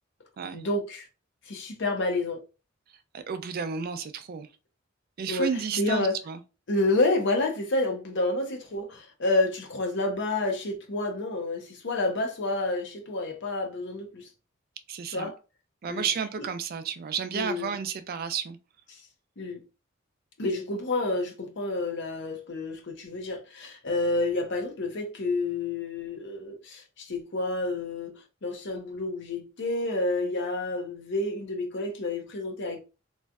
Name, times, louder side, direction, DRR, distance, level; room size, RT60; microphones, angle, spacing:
voice 1, 0.5-1.1 1.5-2.4 5.3-5.5 5.8-6.1 6.7-14.3 15.1-15.4 15.8-16.1 17.3-17.8 19.4-19.6 20.4-28.1 28.4-32.8, left 2 dB, 65° left, 0.7 m, -29 dB
voice 2, 3.1-4.5 5.2-6.4 14.9-15.3 15.8-18.6, right 6 dB, 50° right, 0.4 m, -32 dB
3.1 x 2.5 x 2.2 m
head